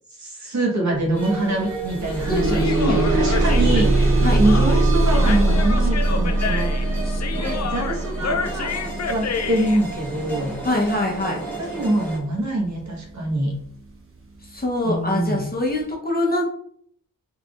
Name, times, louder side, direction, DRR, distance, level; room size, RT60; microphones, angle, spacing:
voice 1, 0.2-8.8 9.1-10.5 11.6-13.6 14.8-15.5, right 1 dB, 55° right, -2 dB, 1.3 m, -25 dB
sound 1, 1.0-1.1 1.5-12.5 13.3-13.4 13.9-14.0, right 2 dB, 40° right, 0.8 m, -22 dB
sound 2, 1.1-12.2, right 2 dB, 5° left, 1.5 m, -35 dB
voice 2, 2.3-3.0 4.2-4.4 10.6-11.4 14.5-16.4, left 2 dB, 25° left, -2 dB, 0.9 m, -23 dB
Human voice, 2.4-9.8, left 5 dB, 55° left, 0.4 m, -30 dB
4.4 x 3.4 x 2.4 m, 0.64 s
wide cardioid pair, 135°, 34 cm